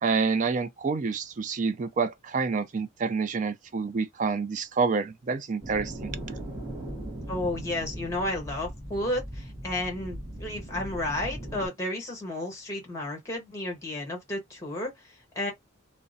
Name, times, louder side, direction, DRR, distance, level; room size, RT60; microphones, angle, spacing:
voice 1, 0.0-6.2, right 4 dB, 40° right, 0.3 m, -28 dB
sound 1, 5.6-11.7, right 1 dB, 10° right, 0.9 m, -38 dB
voice 2, 7.3-15.5, left 1 dB, 15° left, 1.2 m, -32 dB
2.3 x 2.1 x 2.6 m
head